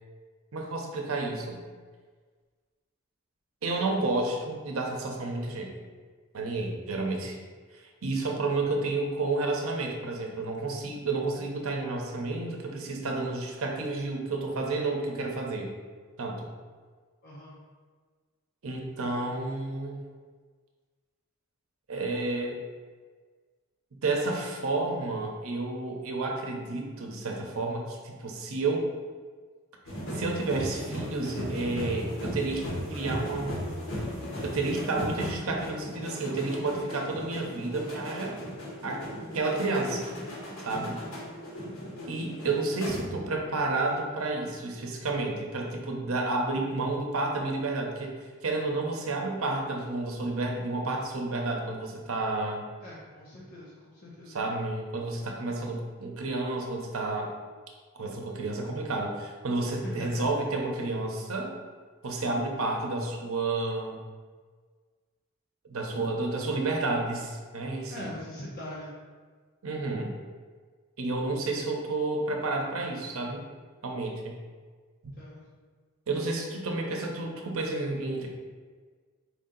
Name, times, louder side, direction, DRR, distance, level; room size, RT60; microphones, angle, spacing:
voice 1, 0.5-1.6 3.6-5.7 6.3-7.4 7.7-15.7 16.2-16.5 18.6-20.0 21.9-22.6 24.0-28.8 30.1-33.5 34.4-38.4 38.8-39.0 39.3-40.1 40.6-41.0 42.1-52.7 54.3-57.3 57.9-61.5 62.0-64.0 65.7-68.1 69.6-70.1 71.0-73.4 73.8-74.4 75.0-75.1 76.1-78.3, right 2 dB, 85° right, 1 dB, 0.7 m, -31 dB
voice 2, 17.2-17.7 19.0-19.6 42.3-42.6 52.8-54.4 59.6-60.2 67.9-68.9 71.3-71.8 75.1-75.5, left 1 dB, 50° left, -7 dB, 0.7 m, -43 dB
sound 1, 29.9-43.4 43.7-44.0, equal, 70° left, 1.3 m, -37 dB
4.7 x 2.8 x 3.8 m, 1.5 s
head